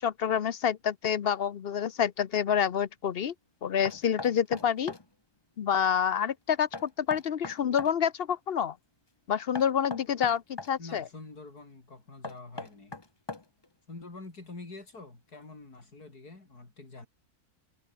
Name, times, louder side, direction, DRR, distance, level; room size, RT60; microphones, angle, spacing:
voice 1, 0.0-3.3 3.6-4.9 5.6-8.7 9.3-11.0, left 8 dB, 50° left, 0.8 m, -28 dB
Knock, 3.8-5.1 6.7-8.0 9.5-10.7 12.2-13.7, left 3 dB, 20° left, 1.0 m, -40 dB
voice 2, 10.8-13.0 13.9-17.1, left 3 dB, 85° left, 5.3 m, -46 dB
omnidirectional pair, 1.6 m